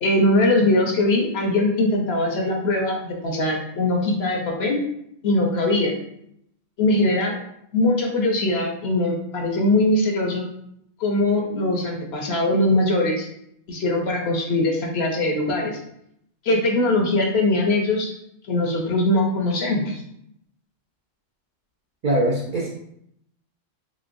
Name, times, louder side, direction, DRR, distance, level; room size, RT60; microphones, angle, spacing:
voice 1, 0.0-4.8 5.2-5.9 6.8-7.4 7.7-10.4 11.0-13.3 13.7-15.8 16.4-18.1 18.5-20.0, left 2 dB, 60° left, 0 dB, 0.8 m, -21 dB
voice 2, 22.0-22.7, right 1 dB, 65° right, -3 dB, 0.5 m, -22 dB
3.1 x 3.0 x 2.5 m, 0.75 s
omnidirectional pair, 1.3 m